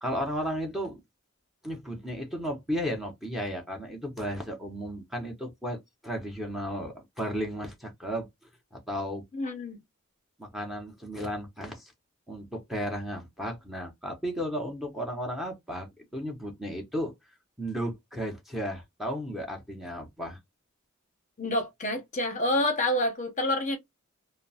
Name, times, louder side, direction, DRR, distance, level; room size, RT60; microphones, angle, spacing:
voice 1, 0.0-1.0 1.6-8.3 8.7-9.2 10.4-11.9 12.3-17.1 17.6-20.4, equal, ahead, 0.7 m, -34 dB
voice 2, 9.3-9.8 21.4-23.8, left 1 dB, 35° left, 0.8 m, -28 dB
2.8 x 2.0 x 2.7 m
head